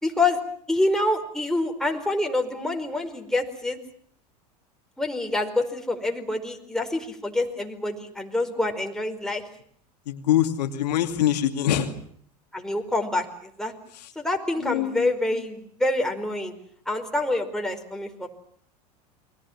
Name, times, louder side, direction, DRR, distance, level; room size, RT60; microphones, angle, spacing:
voice 1, 0.0-0.4 0.7-3.8 5.0-9.4 12.5-13.7 14.1-16.5 16.9-18.3, left 2 dB, ahead, 3 dB, 4.7 m, -26 dB
voice 2, 10.1-11.9 14.6-15.1, left 11 dB, 80° left, 5 dB, 2.6 m, -24 dB
29.0 x 22.5 x 7.3 m, 0.63 s
hypercardioid pair, 95°, 21 cm